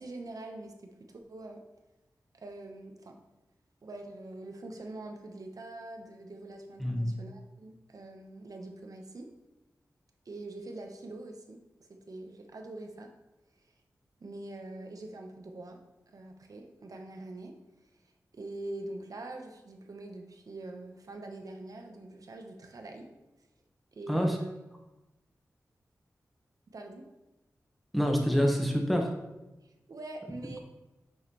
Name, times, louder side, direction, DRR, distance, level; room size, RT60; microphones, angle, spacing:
voice 1, 0.0-1.6 2.3-3.2 3.8-9.3 10.2-13.1 13.6-13.7 14.2-15.8 16.1-17.5 18.3-23.1 23.9-24.6 26.7-27.0 29.6-30.6, right 2 dB, 65° right, 4 dB, 1.0 m, -44 dB
voice 2, 6.8-7.1 24.1-24.3 27.9-29.1, equal, ahead, 1 dB, 1.4 m, -26 dB
7.1 x 4.9 x 3.1 m, 1.0 s
cardioid pair, 50°, 7 cm